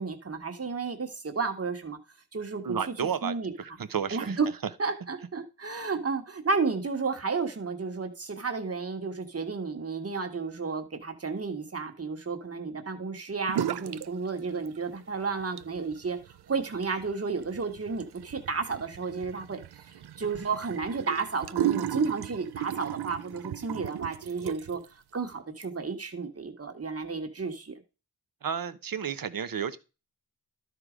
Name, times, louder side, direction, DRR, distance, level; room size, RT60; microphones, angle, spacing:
voice 1, 0.0-2.0 2.3-2.9 3.2-3.5 4.1-4.5 4.8-16.2 16.5-19.9 20.2-24.8 25.1-27.8, right 4 dB, 40° right, 1.4 m, -32 dB
voice 2, 2.6-4.4 28.4-29.8, right 7 dB, 60° right, 0.8 m, -32 dB
sound 1, 13.5-14.1 14.4-15.0 15.4-24.9, right 11 dB, 85° right, 0.5 m, -35 dB
12.5 x 4.8 x 5.0 m
wide cardioid pair, 100°, 38 cm